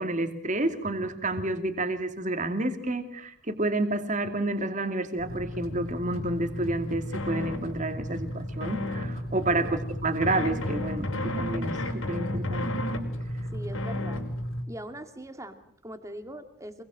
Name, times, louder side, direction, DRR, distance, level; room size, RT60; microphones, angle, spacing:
voice 1, 0.0-12.8, right 2 dB, 35° right, 7 dB, 2.7 m, -30 dB
sound 1, 5.2-14.6, left 1 dB, 70° left, 4.9 m, -33 dB
voice 2, 13.5-14.3 14.7-16.8, right 1 dB, 15° right, 7 dB, 2.4 m, -41 dB
27.5 x 22.0 x 7.6 m, 0.64 s
head